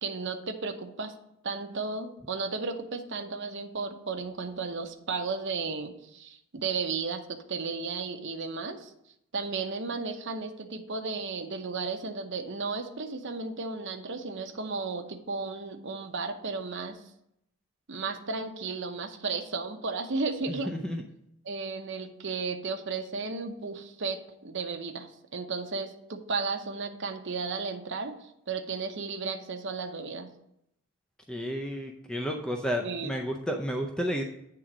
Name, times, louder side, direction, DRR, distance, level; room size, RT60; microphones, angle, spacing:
voice 1, 0.0-1.1 1.4-8.9 9.3-17.0 17.9-20.7 21.4-30.3 32.8-33.1, right 4 dB, 55° right, 5 dB, 0.7 m, -34 dB
voice 2, 20.5-21.0 31.3-34.2, equal, 5° left, 2 dB, 0.5 m, -32 dB
8.8 x 3.8 x 6.0 m, 0.78 s
head